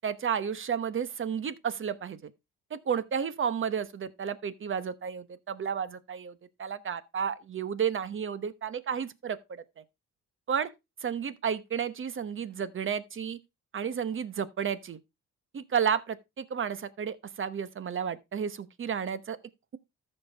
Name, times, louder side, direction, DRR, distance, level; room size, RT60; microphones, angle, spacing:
voice 1, 0.0-2.3 2.7-6.3 6.6-9.6 10.5-10.7 11.0-13.4 13.7-15.0 15.5-19.4, right 7 dB, 40° right, 1.0 m, -32 dB
13.5 x 5.5 x 3.4 m
cardioid pair, 90°, 30 cm